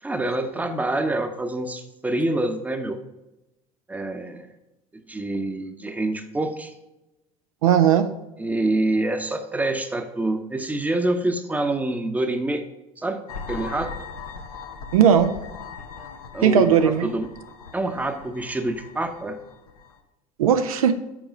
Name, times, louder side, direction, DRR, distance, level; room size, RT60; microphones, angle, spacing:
voice 1, 0.0-3.0 3.9-4.5 5.1-6.7 8.4-12.6 13.0-13.2 13.5-13.9 16.3-17.3 17.7-19.4, right 2 dB, 10° right, 7 dB, 0.8 m, -26 dB
voice 2, 7.6-8.1 14.9-15.4 16.4-17.1 20.4-20.9, right 8 dB, 70° right, 8 dB, 0.6 m, -17 dB
sound 1, 13.3-20.0, left 5 dB, 80° left, 0.8 m, -39 dB
7.5 x 4.8 x 5.1 m, 0.96 s
figure-of-eight pair, 70°, 18 cm